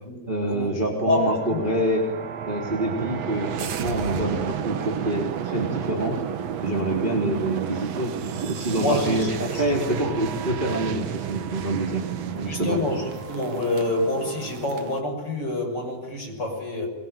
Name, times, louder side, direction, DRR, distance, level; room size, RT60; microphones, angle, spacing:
voice 1, 0.3-2.0 2.5-6.2 6.6-12.8, right 1 dB, 15° right, 0 dB, 3.6 m, -26 dB
voice 2, 1.0-1.6 7.7-7.8 8.8-10.1 12.5-16.9, left 2 dB, 25° left, 2 dB, 6.9 m, -27 dB
sound 1, 1.2-15.0, right 8 dB, 60° right, 2.0 m, -32 dB
24.5 x 24.0 x 9.3 m, 1.1 s
omnidirectional pair, 4.2 m